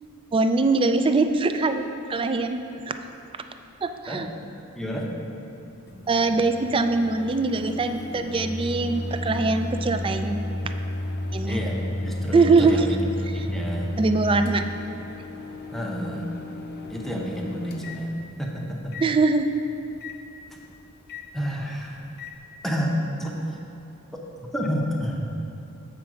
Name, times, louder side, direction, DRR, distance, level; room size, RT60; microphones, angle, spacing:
voice 1, 0.3-1.8 2.1-2.9 3.8-4.3 6.1-10.4 11.3-11.6 12.3-12.8 14.0-14.6 19.0-19.5, right 3 dB, 25° right, 8 dB, 0.3 m, -22 dB
voice 2, 4.7-5.1 11.4-13.9 15.7-16.5 16.9-19.0 21.3-22.0 22.6-23.6 24.1-24.2 24.5-25.3, equal, ahead, -2 dB, 0.8 m, -30 dB
Microwave oven, 5.9-22.4, left 1 dB, 50° left, 0.5 m, -33 dB
7.5 x 4.6 x 6.2 m, 2.8 s
head